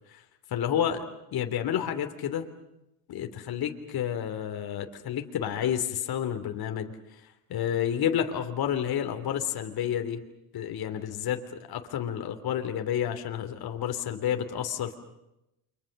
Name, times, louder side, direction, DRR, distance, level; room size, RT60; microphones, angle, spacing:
voice 1, 0.5-1.0 1.3-2.5 3.1-6.9 7.5-10.2 10.5-14.9, left 9 dB, 50° left, 6 dB, 3.2 m, -30 dB
29.5 x 25.0 x 6.6 m, 0.88 s
supercardioid pair, 90°, 48 cm